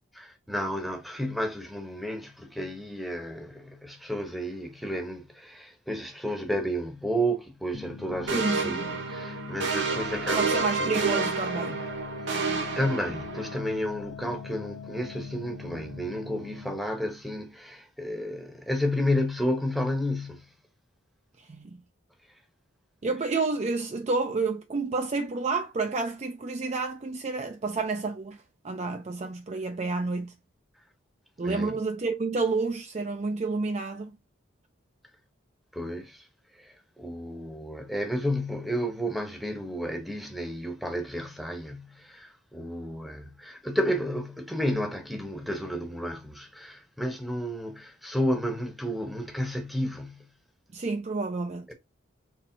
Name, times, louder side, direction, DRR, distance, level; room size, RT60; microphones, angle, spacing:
voice 1, 0.1-11.1 12.3-20.5 31.4-31.7 35.7-36.3 36.5-50.3 51.7-51.8, equal, ahead, 0.8 m, -32 dB
sound 1, 7.7-17.0, left 5 dB, 65° left, 0.7 m, -42 dB
voice 2, 8.3-9.0 10.4-11.9 21.4-21.8 23.0-30.3 31.4-34.1 50.7-51.7, right 3 dB, 35° right, 0.4 m, -30 dB
sound 2, 8.3-13.6, right 4 dB, 65° right, 1.0 m, -29 dB
4.4 x 3.1 x 2.5 m
head